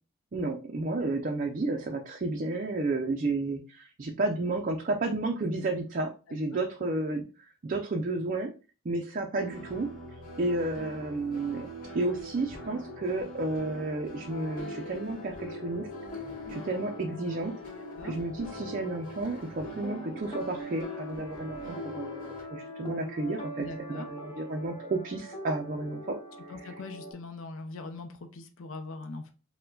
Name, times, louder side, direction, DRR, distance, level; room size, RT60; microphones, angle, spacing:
voice 1, 0.3-7.2 7.6-8.5 8.8-9.9 10.4-11.7 11.9-15.9 16.5-17.5 18.0-26.2 26.6-26.7, right 2 dB, 40° right, 3 dB, 0.4 m, -32 dB
voice 2, 6.3-6.6 17.9-18.2 23.6-24.1 26.5-29.3, left 3 dB, 65° left, 6 dB, 0.5 m, -41 dB
sound 1, 9.3-22.4, equal, 40° left, 1.6 m, -44 dB
sound 2, 14.3-27.1, left 1 dB, 25° left, 0.6 m, -43 dB
4.5 x 2.1 x 3.7 m, 0.34 s
head